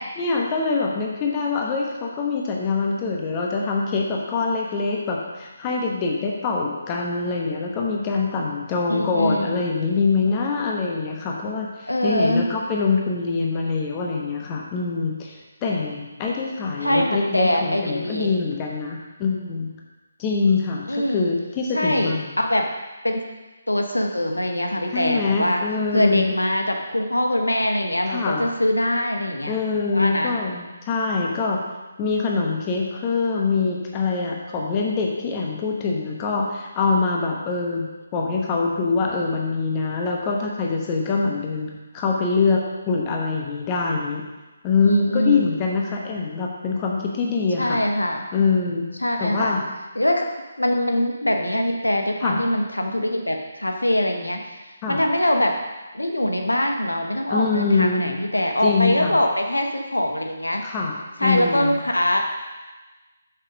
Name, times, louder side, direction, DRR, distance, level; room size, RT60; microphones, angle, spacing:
voice 1, 0.2-15.4 15.6-19.7 20.2-22.3 24.9-26.4 28.1-28.5 29.4-31.6 32.0-44.2 44.6-47.8 48.3-48.8 49.2-49.6 52.2-52.4 54.8-55.0 57.3-58.1 58.6-59.2 60.6-61.8, left 4 dB, 20° left, -1 dB, 1.0 m, -24 dB
voice 2, 8.9-9.5 11.9-12.5 16.8-18.3 20.9-21.3 21.7-22.7 23.0-23.2 23.7-25.6 25.9-29.6 29.9-30.3 31.4-31.5 38.3-38.4 44.8-45.4 47.6-48.2 49.0-49.5 49.9-50.3 50.6-54.4 54.9-55.6 55.9-60.6 61.2-62.2, left 1 dB, 80° left, 3 dB, 1.0 m, -23 dB
6.6 x 6.1 x 5.1 m, 1.2 s
figure-of-eight pair, 145°, 0 cm